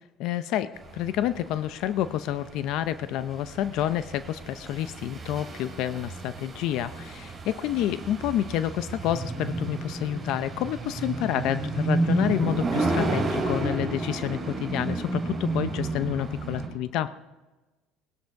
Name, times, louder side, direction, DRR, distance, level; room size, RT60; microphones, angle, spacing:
voice 1, 0.2-17.1, left 12 dB, 65° left, 13 dB, 0.6 m, -29 dB
sound 1, 0.8-16.7, right 3 dB, 20° right, 4.7 m, -31 dB
19.0 x 11.5 x 4.7 m, 1.1 s
cardioid pair, 130°, 0 cm